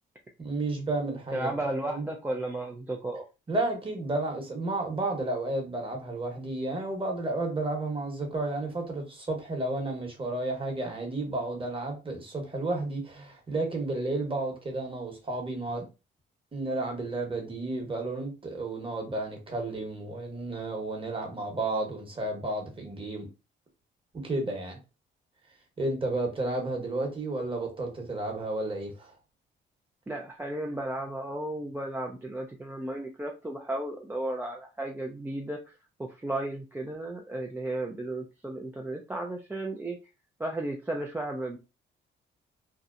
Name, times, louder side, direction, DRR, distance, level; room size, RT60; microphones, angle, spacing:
voice 1, 0.4-1.5 1.9-2.0 3.5-15.9 16.5-23.3 24.1-24.8 25.8-29.1, right 2 dB, 25° right, 1.0 m, -32 dB
voice 2, 1.3-3.2 30.1-35.6 36.1-40.0 40.4-41.6, right 1 dB, 10° right, 0.4 m, -34 dB
2.7 x 2.0 x 2.4 m
cardioid pair, 90°, 20 cm